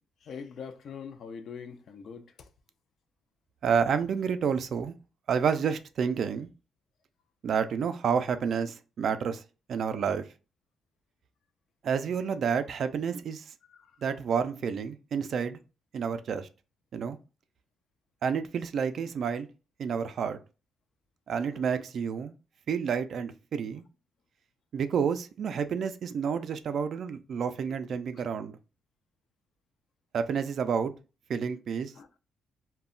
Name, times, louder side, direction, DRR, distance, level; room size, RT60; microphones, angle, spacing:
voice 1, 0.2-2.5 13.7-14.0 21.5-21.6 32.0-32.1, left 6 dB, 60° left, 0.4 m, -43 dB
voice 2, 3.6-4.9 5.3-6.5 7.4-9.4 9.7-10.2 11.8-13.4 14.0-15.6 15.9-16.5 16.9-17.2 18.2-19.5 19.8-20.4 21.3-22.3 22.7-23.8 24.7-28.6 30.1-30.9 31.3-31.9, right 6 dB, 60° right, 0.3 m, -29 dB
2.2 x 2.0 x 3.6 m
cardioid pair, 90°, 0 cm